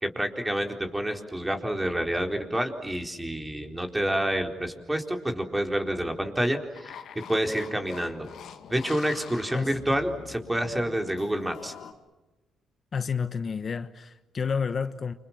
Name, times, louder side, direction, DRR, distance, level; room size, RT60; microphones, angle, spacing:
voice 1, 0.0-8.3 8.7-11.7, right 1 dB, 10° right, 4.1 m, -28 dB
sound 1, 6.7-11.9, left 8 dB, 70° left, 2.5 m, -44 dB
voice 2, 12.9-15.1, left 6 dB, 45° left, 1.2 m, -30 dB
29.0 x 26.5 x 7.4 m
cardioid pair, 90°, 0 cm